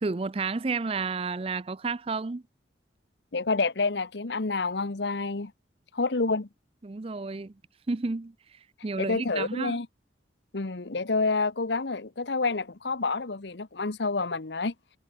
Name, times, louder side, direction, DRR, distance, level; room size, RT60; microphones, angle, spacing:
voice 1, 0.0-2.4 6.8-7.5 7.9-9.8, right 4 dB, 30° right, 0.5 m, -31 dB
voice 2, 3.3-5.5 5.9-6.5 9.0-9.9 10.5-14.7, left 3 dB, 70° left, 1.0 m, -28 dB
head